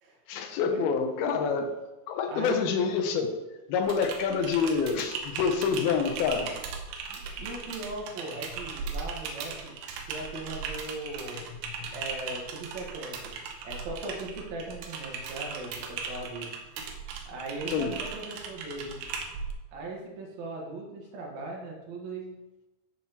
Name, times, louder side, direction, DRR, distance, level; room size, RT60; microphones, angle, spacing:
voice 1, 0.3-1.7 2.1-3.4 3.7-6.5 11.3-11.4 17.7-17.9, left 6 dB, 90° left, 6 dB, 2.7 m, -27 dB
voice 2, 2.3-2.7 7.1-9.7 10.1-11.4 11.9-13.3 13.6-16.5 17.2-19.0 19.7-22.4, right 2 dB, 55° right, -1 dB, 2.5 m, -39 dB
Typing, 3.8-19.5, right 5 dB, 85° right, 2.8 m, -38 dB
12.5 x 5.9 x 3.0 m, 1.0 s
omnidirectional pair, 4.4 m